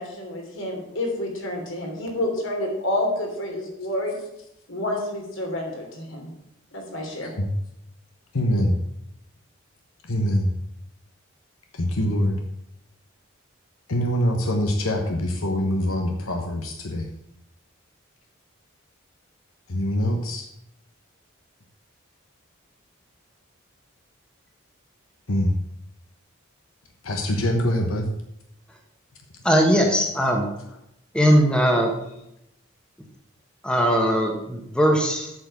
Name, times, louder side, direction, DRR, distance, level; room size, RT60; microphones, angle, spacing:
voice 1, 0.0-4.1 4.7-6.3 6.7-7.3, left 1 dB, 65° left, 0 dB, 3.3 m, -29 dB
voice 2, 8.3-8.8 10.1-10.5 11.7-12.4 13.9-17.1 19.7-20.5 25.3-25.5 27.0-28.1 31.8-31.9, equal, 85° left, 3 dB, 1.2 m, -24 dB
voice 3, 29.4-30.5 31.1-31.9 33.6-35.3, equal, 5° left, 1 dB, 1.2 m, -19 dB
8.6 x 6.8 x 7.6 m, 0.81 s
head